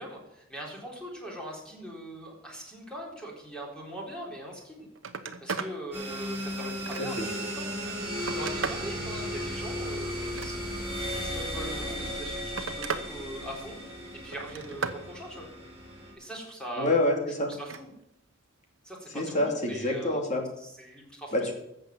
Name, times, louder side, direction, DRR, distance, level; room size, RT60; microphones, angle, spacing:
voice 1, 0.0-4.9 5.4-13.8 14.2-15.5 16.2-16.9 17.6-17.9 18.8-20.2 20.6-21.3, right 1 dB, 5° left, -2 dB, 4.1 m, -41 dB
Telephone, 4.5-4.6 4.9-5.8 6.2-7.3 7.9-8.9 10.1-11.0 11.9-13.1 13.4-13.9 14.3-15.0 17.5-17.8 19.2-19.4, right 5 dB, 70° right, 1.0 m, -36 dB
sound 1, 5.9-16.1, equal, 15° right, 6.3 m, -35 dB
voice 2, 16.8-17.5 19.1-20.4 21.3-21.5, left 1 dB, 40° left, 2 dB, 2.9 m, -27 dB
14.0 x 7.7 x 7.7 m, 0.81 s
head